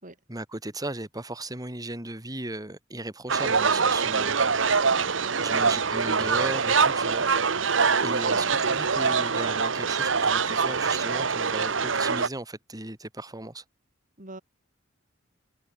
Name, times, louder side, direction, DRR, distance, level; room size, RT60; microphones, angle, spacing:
voice 1, 0.3-4.4 5.4-7.2 8.0-13.6, right 2 dB, 20° right, 3.2 m, -36 dB
sound 1, 3.3-12.3, right 5 dB, 70° right, 1.3 m, -24 dB
voice 2, 4.8-6.0 7.2-7.4 7.7-8.5 14.2-14.4, right 2 dB, 40° right, 4.4 m, -44 dB
head